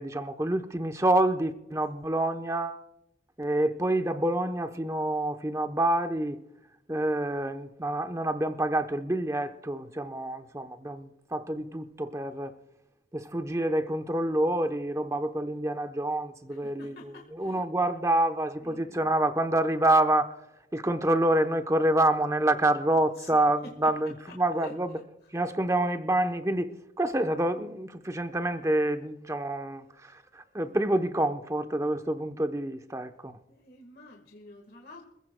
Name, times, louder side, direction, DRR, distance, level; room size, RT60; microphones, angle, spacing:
voice 1, 0.0-2.8 3.4-6.4 6.9-12.6 13.1-20.3 20.7-25.0 25.3-26.7 27.0-33.3, right 1 dB, 15° right, 0.8 m, -27 dB
voice 2, 16.5-17.6 18.6-19.1 23.2-23.9 24.3-24.4 24.6-24.8 25.2-25.3 33.5-35.0, left 2 dB, 55° left, 1.6 m, -48 dB
26.5 x 15.0 x 2.2 m
head